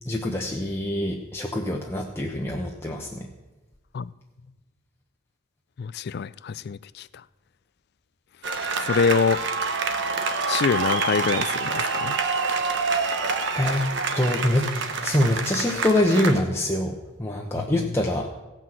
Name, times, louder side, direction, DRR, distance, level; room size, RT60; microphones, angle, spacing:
voice 1, 0.1-3.3 13.5-13.8 14.2-14.7 15.0-18.3, left 1 dB, 10° left, 0 dB, 0.8 m, -24 dB
voice 2, 5.8-7.1 8.8-9.4 10.5-12.2 17.6-17.9, left 5 dB, 50° left, 17 dB, 0.3 m, -25 dB
sound 1, 8.4-16.4, right 4 dB, 55° right, 1.0 m, -27 dB
16.5 x 6.0 x 7.6 m, 1.1 s
head